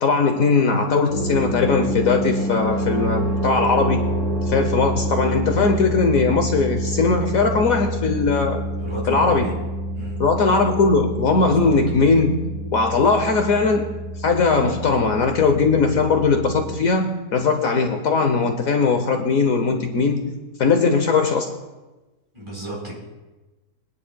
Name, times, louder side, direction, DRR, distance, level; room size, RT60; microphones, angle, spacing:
voice 1, 0.0-4.1 4.4-8.6 9.1-9.5 10.2-12.4 12.7-20.3 20.6-21.5, left 4 dB, 65° left, 5 dB, 1.2 m, -19 dB
sound 1, 1.1-16.7, right 1 dB, 50° right, 5.0 m, -27 dB
voice 2, 8.8-9.5 9.9-10.2 11.4-11.8 22.3-22.9, right 1 dB, 20° right, -5 dB, 4.3 m, -32 dB
22.5 x 10.0 x 2.3 m, 1.1 s
omnidirectional pair, 1.6 m